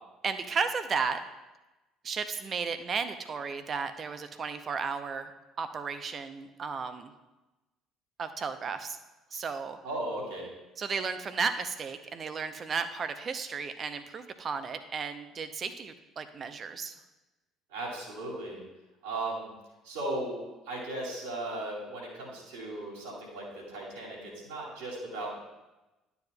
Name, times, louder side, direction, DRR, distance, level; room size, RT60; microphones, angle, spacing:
voice 1, 0.2-1.2 2.0-5.3 5.6-7.1 8.2-9.0 9.3-9.8 10.8-16.9, right 5 dB, 40° right, 10 dB, 0.6 m, -34 dB
voice 2, 9.8-10.5 17.7-18.6 19.0-19.5 19.8-25.4, right 2 dB, 75° right, -5 dB, 2.8 m, -37 dB
11.5 x 7.0 x 2.3 m, 1.1 s
figure-of-eight pair, 55°, 0 cm